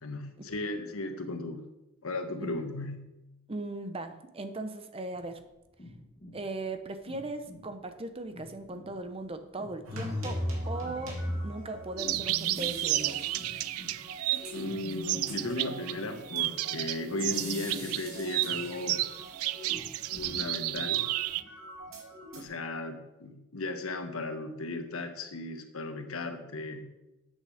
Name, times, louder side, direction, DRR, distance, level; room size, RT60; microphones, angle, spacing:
voice 1, 0.0-1.6 2.0-3.1 14.5-19.0 20.2-21.1 22.3-26.9, left 2 dB, 75° left, 6 dB, 1.2 m, -36 dB
voice 2, 3.5-5.4 6.3-13.2, right 2 dB, 25° right, 8 dB, 0.7 m, -38 dB
sound 1, 5.1-20.4, left 1 dB, 30° left, 1.2 m, -52 dB
sound 2, 9.8-22.4, equal, 65° right, 2.5 m, -40 dB
sound 3, 12.0-16.0 16.3-21.4, right 16 dB, 85° right, 0.4 m, -32 dB
8.3 x 6.6 x 6.4 m, 0.96 s
head